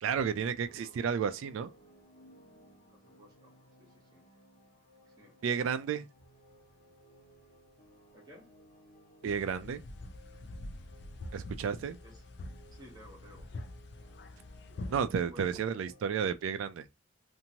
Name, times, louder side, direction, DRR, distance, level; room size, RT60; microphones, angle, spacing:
voice 1, 0.0-1.7 5.4-6.1 9.2-9.8 11.3-12.0 14.9-16.9, right 7 dB, 80° right, 0.3 m, -32 dB
sound 1, 0.6-16.1, equal, 40° left, 1.1 m, -60 dB
voice 2, 2.9-4.3 5.2-5.4 8.1-8.5 12.0-12.2 12.7-13.4 15.3-15.8, equal, 20° right, 1.0 m, -56 dB
sound 2, 9.2-15.1, left 2 dB, 55° left, 0.4 m, -45 dB
2.9 x 2.6 x 2.7 m
head